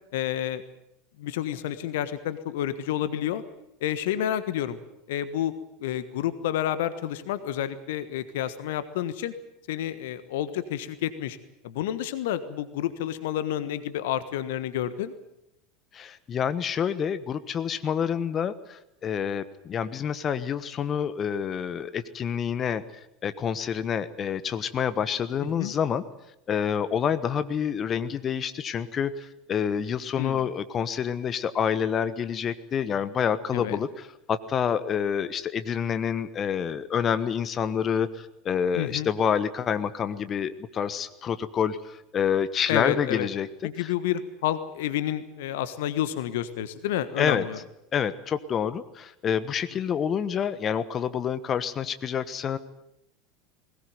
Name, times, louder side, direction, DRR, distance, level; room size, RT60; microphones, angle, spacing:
voice 1, 0.1-0.6 1.2-3.4 3.8-4.8 5.1-5.5 5.8-9.3 9.7-11.4 11.6-15.1 25.4-25.7 30.2-30.4 33.5-33.8 38.8-39.1 42.7-43.3 43.6-47.6, left 11 dB, 70° left, 14 dB, 1.4 m, -29 dB
voice 2, 15.9-22.8 23.2-26.0 26.5-43.5 43.8-43.9 47.2-47.4 47.9-52.6, left 8 dB, 35° left, 13 dB, 1.2 m, -28 dB
20.5 x 18.5 x 9.5 m, 0.83 s
hypercardioid pair, 80°, 0 cm